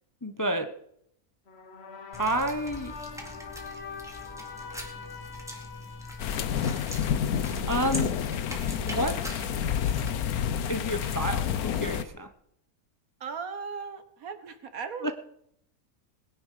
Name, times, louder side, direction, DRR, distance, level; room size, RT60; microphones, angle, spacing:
voice 1, 0.2-0.7 2.2-2.9 7.7-8.2 8.8-9.2 10.7-12.3 15.0-15.1, right 1 dB, 15° left, 8 dB, 0.7 m, -29 dB
sound 1, 1.5-7.8, left 5 dB, 50° left, 1.3 m, -44 dB
sound 2, 2.1-10.1, equal, ahead, 2.4 m, -42 dB
sound 3, 6.2-12.0, left 8 dB, 80° left, 1.3 m, -29 dB
voice 2, 13.2-15.1, right 5 dB, 70° right, 10 dB, 1.7 m, -37 dB
20.0 x 10.5 x 5.0 m, 0.71 s
omnidirectional pair, 1.5 m